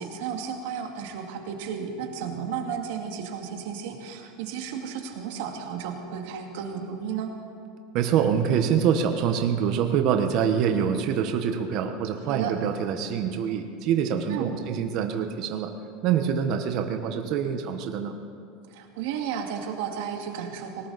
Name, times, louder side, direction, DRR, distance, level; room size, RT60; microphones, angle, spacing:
voice 1, 0.0-7.3 12.3-12.5 14.3-14.6 18.7-20.9, right 7 dB, 70° right, 3 dB, 2.0 m, -33 dB
voice 2, 7.9-15.7 16.0-18.1, right 8 dB, 45° right, 6 dB, 1.1 m, -25 dB
19.0 x 18.5 x 4.1 m, 2.4 s
supercardioid pair, 160°, 0 cm